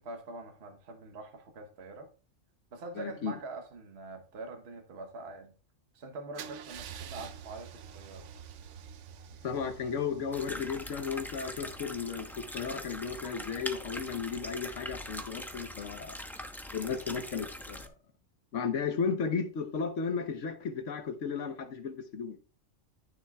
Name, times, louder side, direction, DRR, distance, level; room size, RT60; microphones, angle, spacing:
voice 1, 0.0-2.1 2.7-5.5 5.9-8.3, right 3 dB, 55° right, 1.2 m, -44 dB
voice 2, 3.0-3.4 9.4-16.2 16.7-17.9 18.5-22.4, left 6 dB, 75° left, 1.2 m, -34 dB
Car / Engine starting / Idling, 6.3-12.2, right 7 dB, 75° right, 1.0 m, -47 dB
sound 1, 10.3-17.9, equal, ahead, 0.8 m, -42 dB
13.0 x 7.2 x 2.3 m
omnidirectional pair, 1.3 m